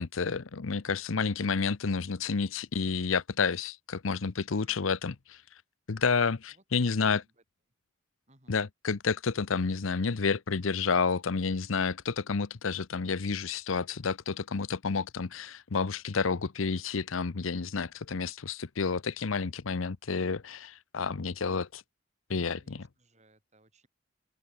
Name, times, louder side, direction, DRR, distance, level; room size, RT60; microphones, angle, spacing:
voice 1, 0.0-5.1 5.9-7.2 8.5-21.8 22.3-22.8, left 5 dB, 90° left, 0.8 m, -30 dB
voice 2, 4.4-5.0 6.5-7.4 8.3-8.6 22.5-23.9, right 2 dB, 35° right, 7.9 m, -64 dB
head